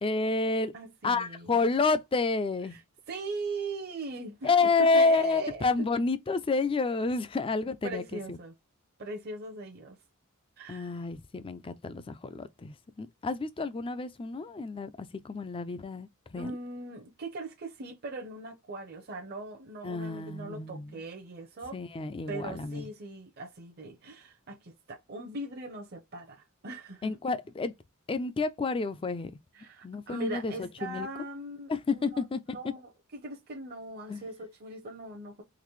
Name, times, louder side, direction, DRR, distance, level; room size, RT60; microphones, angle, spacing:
voice 1, 0.0-0.7 1.0-2.8 4.4-8.4 10.7-16.5 19.8-21.0 21.7-22.8 27.0-27.7 28.1-29.3 29.8-31.1 31.7-32.6 34.1-34.2, left 3 dB, 25° left, 0.4 m, -29 dB
voice 2, 0.7-1.6 2.7-2.8 3.1-5.7 7.8-8.5 9.0-10.0 10.6-10.9 16.4-21.8 22.3-27.2 29.5-35.4, right 2 dB, 45° right, 0.7 m, -40 dB
3.9 x 2.5 x 3.1 m
head